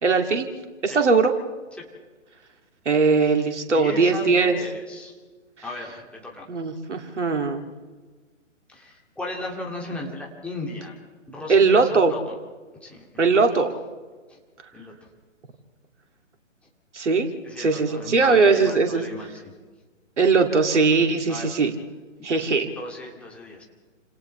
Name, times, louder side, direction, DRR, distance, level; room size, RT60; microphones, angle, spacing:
voice 1, 0.0-0.5 0.8-1.3 2.9-4.6 6.5-7.6 11.5-12.1 13.2-13.7 16.9-17.3 17.6-19.0 20.2-21.7 22.2-22.7, right 4 dB, 65° right, 4 dB, 2.7 m, -20 dB
voice 2, 3.7-5.2 5.6-6.5 8.7-10.9 11.3-12.3 12.8-13.1 14.3-14.4 14.7-14.9 17.4-19.4 21.3-21.6 22.3-23.6, left 2 dB, 5° left, -2 dB, 2.4 m, -36 dB
29.5 x 27.5 x 3.3 m, 1.4 s
figure-of-eight pair, 135°, 38 cm